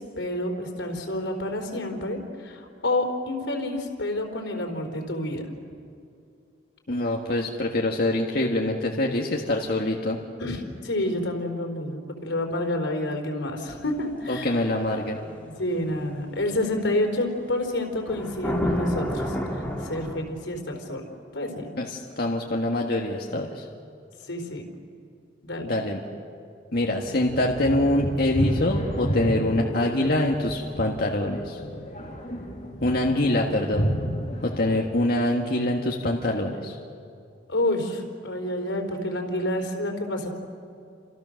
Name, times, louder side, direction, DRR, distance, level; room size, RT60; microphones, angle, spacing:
voice 1, 0.0-5.5 10.4-14.7 15.2-21.0 21.3-21.7 24.3-24.6 25.4-25.7 37.5-40.3, left 1 dB, 85° left, 3 dB, 4.0 m, -29 dB
voice 2, 6.9-10.2 14.3-15.2 21.8-23.6 25.6-26.0 26.7-31.6 32.8-33.9 34.4-36.8, left 1 dB, 55° left, -1 dB, 1.8 m, -25 dB
sound 1, 13.9-14.1 18.1-20.2, equal, 10° left, 3.0 m, -28 dB
sound 2, 26.8-34.8, equal, 40° left, 3.0 m, -31 dB
29.5 x 27.5 x 6.5 m, 2.4 s
head